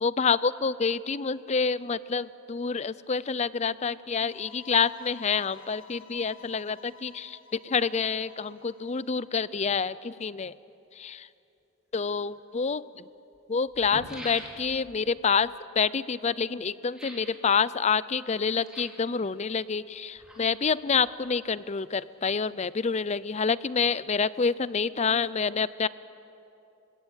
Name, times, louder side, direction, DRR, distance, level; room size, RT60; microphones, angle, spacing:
voice 1, 0.0-7.4 7.6-10.5 11.0-11.3 11.9-12.8 13.5-15.5 15.8-25.9, left 5 dB, 30° left, 18 dB, 0.5 m, -27 dB
sound 1, 4.1-9.1, left 6 dB, 65° left, 2.8 m, -53 dB
sound 2, 12.4-12.5 13.3-13.4 13.7-14.9 16.9-17.4 18.5-19.1 19.9-20.7 21.0-21.1, equal, 5° right, 4.0 m, -44 dB
29.0 x 17.5 x 8.9 m, 2.8 s
head